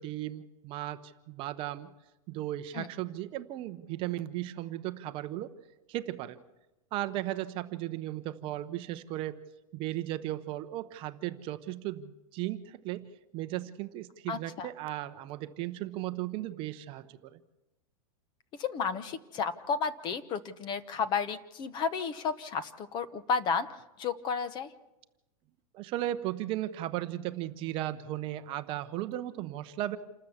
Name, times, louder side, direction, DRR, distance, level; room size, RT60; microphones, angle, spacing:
voice 1, 0.0-1.9 2.3-5.5 5.9-6.4 6.9-9.4 9.7-13.1 13.3-17.4 25.7-30.0, right 14 dB, 30° right, 10 dB, 0.8 m, -36 dB
voice 2, 14.3-14.7 18.6-24.7, left 5 dB, 25° left, 13 dB, 0.9 m, -32 dB
28.0 x 13.5 x 7.2 m, 1.0 s
supercardioid pair, 160°, 18 cm